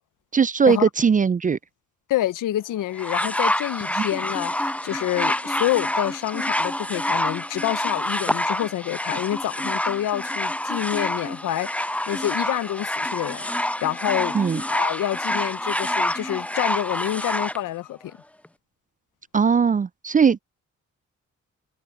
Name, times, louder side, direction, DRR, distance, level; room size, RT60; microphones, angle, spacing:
voice 1, 0.3-1.6 4.0-4.1 14.3-14.6 19.3-20.4, right 6 dB, 25° right, 0.3 m, -19 dB
voice 2, 2.1-14.4 14.7-18.1, left 13 dB, 75° left, 0.6 m, -27 dB
sound 1, 3.0-17.6 18.4-18.5, left 1 dB, 5° left, 0.7 m, -27 dB
supercardioid pair, 55°, 32 cm